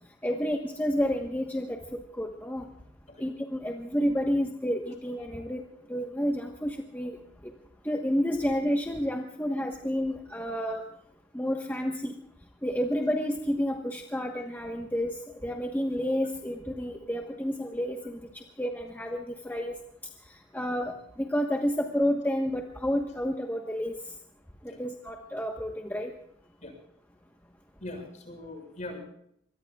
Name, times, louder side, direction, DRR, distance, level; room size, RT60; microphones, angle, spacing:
voice 1, 0.2-2.7 3.2-5.6 5.9-7.2 7.8-10.8 11.3-12.2 12.6-19.8 20.3-23.9 24.6-26.1, equal, 10° left, 2 dB, 1.3 m, -30 dB
voice 2, 27.8-29.0, left 2 dB, 40° left, 3 dB, 6.7 m, -41 dB
25.0 x 22.0 x 2.4 m, 0.69 s
head